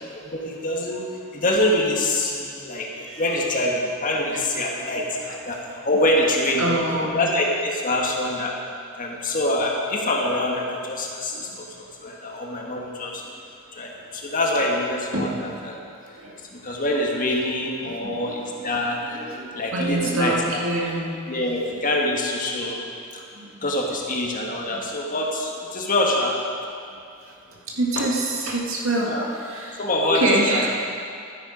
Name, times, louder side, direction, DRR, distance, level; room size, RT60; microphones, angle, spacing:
voice 1, 0.2-1.1 1.3-2.9 3.2-6.7 7.1-8.6 9.0-13.2 13.7-15.8 16.1-16.2 16.5-20.3 21.3-22.8 23.1-23.2 23.6-26.4 29.1-29.3 29.8-30.6, left 1 dB, 40° left, -1 dB, 1.6 m, -25 dB
voice 2, 2.7-3.3 4.1-4.4 5.5-5.7 6.6-7.2 11.3-11.4 13.2-13.3 15.1-15.3 16.2-16.4 17.8-18.7 19.1-21.2 21.7-21.9 23.3-23.7 24.7-24.8 27.2-30.7, right 1 dB, 65° right, -2 dB, 2.0 m, -27 dB
12.5 x 10.0 x 5.0 m, 2.4 s
head